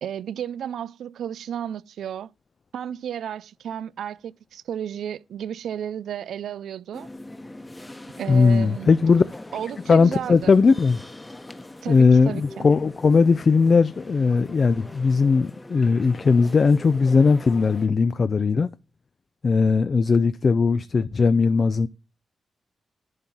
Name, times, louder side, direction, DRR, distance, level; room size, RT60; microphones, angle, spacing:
voice 1, 0.0-2.3 2.7-7.1 8.2-8.9 9.5-10.5 11.8-12.7, right 9 dB, 85° right, 0.3 m, -33 dB
sound 1, 6.9-17.9, left 2 dB, 20° left, 1.0 m, -42 dB
voice 2, 8.3-9.2 9.9-11.0 11.9-18.7 19.4-21.9, left 4 dB, 55° left, 0.4 m, -18 dB
11.0 x 3.8 x 4.3 m
cardioid pair, 50°, 0 cm